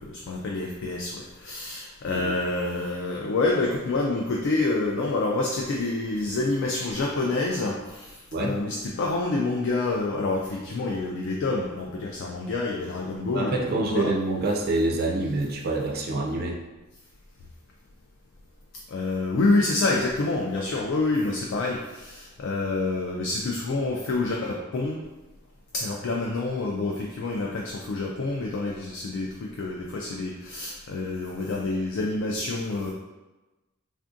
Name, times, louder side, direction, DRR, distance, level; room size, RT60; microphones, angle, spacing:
voice 1, 0.0-14.1 18.9-25.0 25.7-32.9, left 2 dB, 60° left, -1 dB, 0.3 m, -27 dB
voice 2, 13.3-16.6, right 2 dB, 45° right, 1 dB, 0.3 m, -26 dB
3.4 x 2.4 x 2.5 m, 1.1 s
head